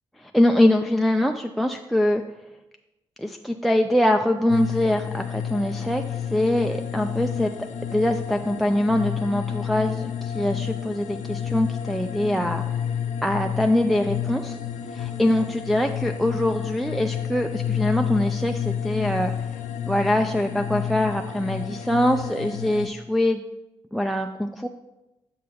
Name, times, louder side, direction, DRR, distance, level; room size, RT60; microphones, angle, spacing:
voice 1, 0.2-2.2 3.2-6.0 6.3-7.5 7.9-12.7 13.2-14.6 14.9-19.3 19.9-23.4 23.9-24.7, left 1 dB, ahead, 4 dB, 0.4 m, -23 dB
sound 1, 4.5-22.9, left 8 dB, 75° left, 0.5 m, -30 dB
6.3 x 5.5 x 4.0 m, 1.0 s
supercardioid pair, 50°, 12 cm